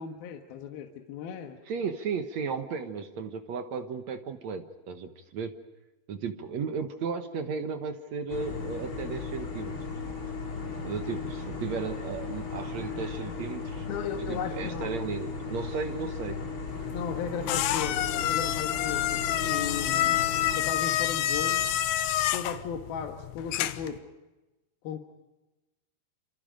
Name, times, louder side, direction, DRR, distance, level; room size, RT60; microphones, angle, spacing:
voice 1, 0.0-1.6 13.9-14.9 16.9-20.2 20.6-21.7 22.3-24.1 24.8-25.0, left 7 dB, 70° left, 4 dB, 3.2 m, -36 dB
voice 2, 1.7-5.5 6.1-9.8 10.8-13.9 14.3-16.4, right 5 dB, 60° right, 8 dB, 1.9 m, -35 dB
sound 1, 8.3-20.6, left 4 dB, 30° left, 4.7 m, -36 dB
sound 2, 16.7-24.0, left 12 dB, 85° left, 3.1 m, -28 dB
28.0 x 27.0 x 5.2 m, 1.1 s
omnidirectional pair, 4.7 m